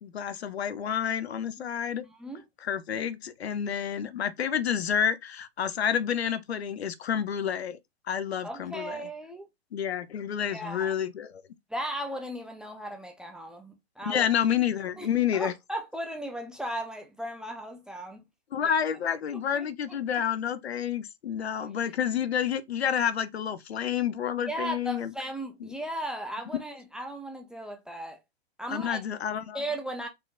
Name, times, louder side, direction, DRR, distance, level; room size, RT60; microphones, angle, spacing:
voice 1, 0.0-2.0 2.6-7.8 8.1-9.0 9.7-11.4 14.0-15.5 18.5-25.1 25.6-25.7 28.7-29.6, left 8 dB, 80° left, 0.7 m, -29 dB
voice 2, 2.0-2.4 8.4-9.5 10.5-10.9 11.7-14.3 15.0-15.1 15.3-18.2 18.6-18.8 19.5-19.7 20.1-20.2 21.6-21.7 24.5-28.2 28.6-29.0 29.5-30.1, right 1 dB, ahead, 0.5 m, -36 dB
4.3 x 3.8 x 2.3 m
hypercardioid pair, 115°, 32 cm